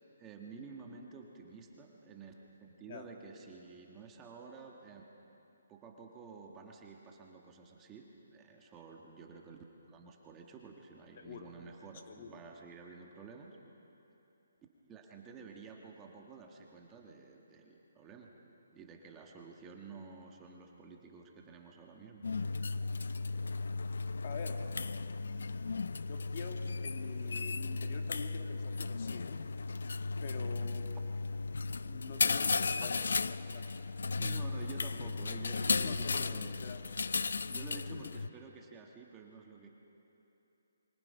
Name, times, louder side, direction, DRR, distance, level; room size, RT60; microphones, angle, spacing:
voice 1, 0.2-5.0 5.7-9.6 9.9-13.6 14.8-18.3 18.7-22.2 34.2-36.7 37.5-39.7, right 5 dB, 15° right, 1 dB, 1.5 m, -51 dB
voice 2, 11.2-11.5 12.1-12.3 24.2-24.7 26.0-29.6 30.2-30.9 31.9-33.0 33.2-33.6 35.7-36.3 36.6-36.8 37.9-38.1, left 6 dB, 40° left, 4 dB, 1.9 m, -46 dB
sound 1, 22.2-38.3, left 4 dB, 75° left, 0.6 m, -35 dB
28.0 x 24.0 x 5.6 m, 3.0 s
hypercardioid pair, 165°, 0 cm